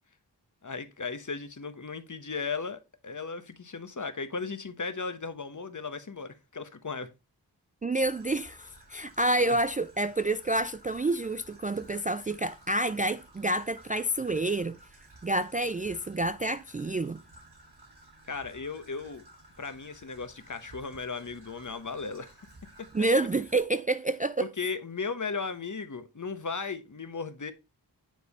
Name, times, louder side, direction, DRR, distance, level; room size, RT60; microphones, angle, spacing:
voice 1, 0.6-7.1 9.4-9.6 18.3-19.2 19.6-22.5 22.8-22.9 24.4-27.5, left 4 dB, 45° left, 1.0 m, -36 dB
voice 2, 7.8-14.8 15.2-17.2 22.9-24.5, right 2 dB, 20° right, 0.3 m, -28 dB
Traffic noise roadway noise / Trickle dribble, 8.0-23.6, right 2 dB, 75° right, 2.5 m, -55 dB
9.3 x 3.3 x 4.1 m
cardioid pair, 45°, 41 cm